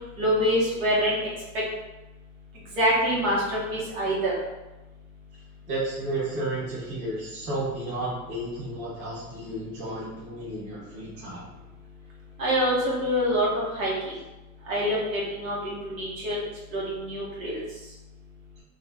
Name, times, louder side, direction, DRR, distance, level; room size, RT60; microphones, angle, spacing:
voice 1, 0.2-1.2 2.8-4.3 12.4-13.9 14.7-16.4 16.7-17.6, equal, 70° right, -5 dB, 1.4 m, -25 dB
voice 2, 5.7-11.5, right 2 dB, 15° right, -10 dB, 0.7 m, -32 dB
2.7 x 2.5 x 3.3 m, 1.1 s
supercardioid pair, 170°, 42 cm